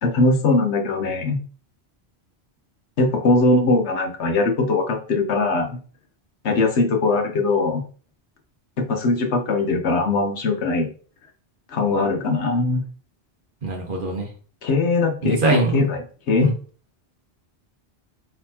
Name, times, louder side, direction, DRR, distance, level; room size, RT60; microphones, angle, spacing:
voice 1, 0.0-1.4 3.0-5.8 6.4-7.8 8.9-10.9 11.7-12.8 14.6-16.5, left 3 dB, 80° left, 4 dB, 1.2 m, -21 dB
voice 2, 13.6-14.3 15.2-15.9 16.4-16.5, right 3 dB, 50° right, 1 dB, 1.4 m, -22 dB
4.7 x 4.0 x 2.8 m, 0.41 s
omnidirectional pair, 1.1 m